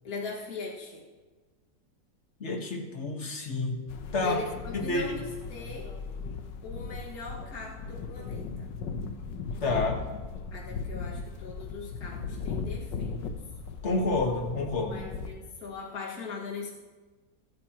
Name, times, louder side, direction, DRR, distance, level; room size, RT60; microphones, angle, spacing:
voice 1, 0.0-1.0 4.2-5.2 5.5-5.9 6.6-8.7 10.5-13.1 14.9-16.7, left 4 dB, 55° left, -4 dB, 2.4 m, -40 dB
voice 2, 2.4-3.8 4.1-4.4 4.7-5.1 9.6-10.0 13.8-15.0, left 2 dB, 40° left, 2 dB, 1.7 m, -29 dB
sound 1, 3.9-15.3, left 5 dB, 80° left, 1.6 m, -37 dB
24.5 x 9.6 x 3.0 m, 1.3 s
omnidirectional pair, 1.9 m